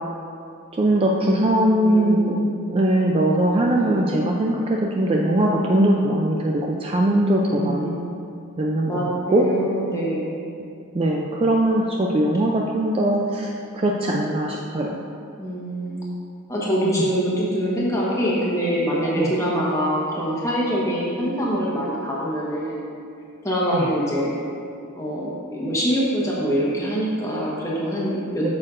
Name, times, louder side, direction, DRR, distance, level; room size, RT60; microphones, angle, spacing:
voice 1, 0.7-2.4 2.7-7.9 8.6-9.5 10.9-15.0 16.9-17.0 19.2-19.3 23.7-23.9 28.4-28.5, right 1 dB, 25° right, -1 dB, 0.3 m, -21 dB
voice 2, 1.8-2.5 3.7-4.0 7.4-8.0 8.9-10.3 15.4-16.0 16.5-22.8 23.4-24.4 24.9-28.5, equal, 15° left, -6 dB, 1.2 m, -24 dB
8.4 x 6.4 x 2.5 m, 2.5 s
head